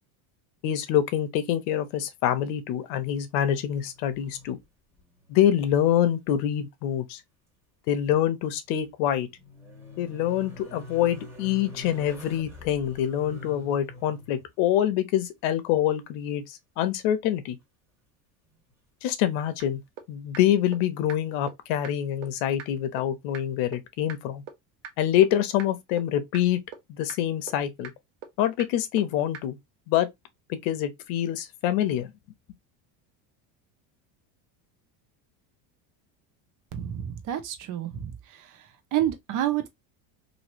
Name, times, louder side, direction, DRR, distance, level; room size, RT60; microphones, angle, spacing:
voice 1, 0.6-4.6 5.3-7.2 7.9-9.3 10.0-17.6 19.0-19.8 20.1-24.4 25.0-26.6 26.9-27.9 28.4-29.6 29.9-30.1 30.5-32.1, left 11 dB, 80° left, 0.9 m, -25 dB
sound 1, 3.7-4.7 5.0-5.8 6.0-6.1 8.6-14.5 17.4-17.5, left 2 dB, 5° right, 1.8 m, -45 dB
sound 2, 19.6-19.7 20.0-20.1 20.3-20.4 20.7-20.8 21.1-21.2 21.5-21.6 21.8-21.9 22.2-22.3 22.6-22.7 23.0-23.1 23.3-23.4 23.7-23.8 24.1-24.2 24.5-24.6 24.8-24.9 25.2-25.3 25.6-25.7 26.0-26.1 26.3-26.4 26.7-26.8 27.1-27.2 27.5-27.6 27.8-27.9 28.2-28.3 28.6-28.7 29.0-29.1 29.3-29.4, right 7 dB, 90° right, 1.0 m, -39 dB
voice 2, 36.7-38.1 38.9-39.7, right 11 dB, 45° right, 0.9 m, -28 dB
3.1 x 2.7 x 2.8 m
cardioid pair, 140°, 43 cm